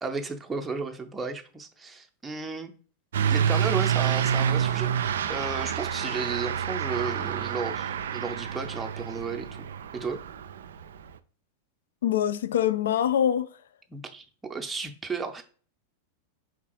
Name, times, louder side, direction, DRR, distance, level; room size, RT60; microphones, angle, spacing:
voice 1, 0.0-2.7 3.3-9.7 9.9-10.2 13.9-15.4, right 4 dB, 10° right, 0.6 m, -34 dB
Truck / Accelerating revving vroom, 3.1-11.1, right 9 dB, 60° right, 0.3 m, -28 dB
voice 2, 12.0-13.5, left 10 dB, 60° left, 0.4 m, -24 dB
4.6 x 3.7 x 3.0 m
figure-of-eight pair, 90°, 0 cm